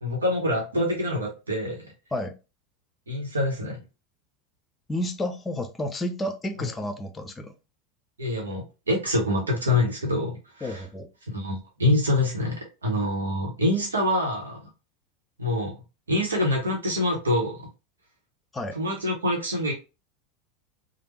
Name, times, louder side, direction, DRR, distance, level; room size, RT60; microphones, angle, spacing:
voice 1, 0.0-1.8 3.1-3.8 6.6-6.7 8.2-10.8 11.3-14.7 15.4-15.8 16.1-17.7 18.7-19.7, left 1 dB, 85° right, 0.9 m, -26 dB
voice 2, 4.9-7.5 10.6-11.1 18.5-18.8, left 1 dB, 20° left, 0.6 m, -31 dB
3.3 x 2.1 x 3.0 m
figure-of-eight pair, 85°, 0 cm